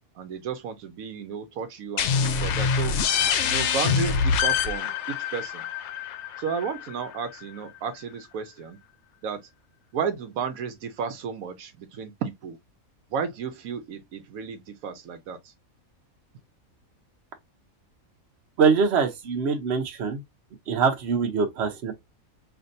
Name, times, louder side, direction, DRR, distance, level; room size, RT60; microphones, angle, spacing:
voice 1, 0.2-2.9 3.4-5.6 6.4-8.8 9.2-9.4 9.9-12.6 13.1-15.4, right 6 dB, 80° right, 1.1 m, -33 dB
sound 1, 2.0-7.4, left 6 dB, 65° left, 0.8 m, -25 dB
voice 2, 18.6-20.2 20.7-21.9, right 5 dB, 55° right, 1.1 m, -23 dB
5.7 x 2.5 x 2.6 m
omnidirectional pair, 1.5 m